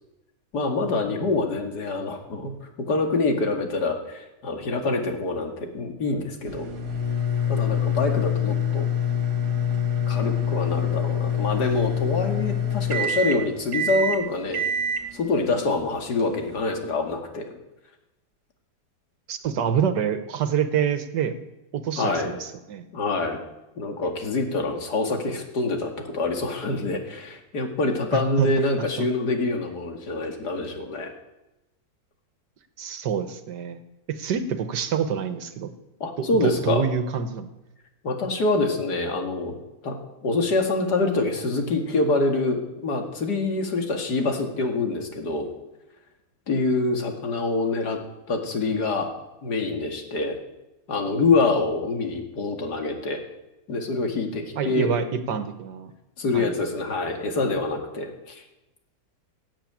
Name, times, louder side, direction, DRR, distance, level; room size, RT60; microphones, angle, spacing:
voice 1, 0.5-2.5 2.9-6.7 7.5-8.9 10.1-14.6 15.1-17.5 22.0-22.3 22.9-23.4 23.8-31.1 36.0-36.8 38.0-39.6 39.8-40.0 40.2-45.5 46.5-48.0 48.3-49.1 49.4-50.4 50.9-53.2 53.7-54.9 56.2-58.4, left 3 dB, 75° left, 4 dB, 2.6 m, -25 dB
sound 1, 6.5-16.8, left 5 dB, 70° right, 2.2 m, -26 dB
voice 2, 19.3-21.4 21.7-22.9 28.1-28.5 29.0-29.1 32.8-33.8 34.1-35.7 36.2-37.5 54.6-55.9 56.3-56.6, right 7 dB, 90° right, 10 dB, 1.8 m, -26 dB
17.0 x 8.8 x 8.8 m, 0.97 s
omnidirectional pair, 1.8 m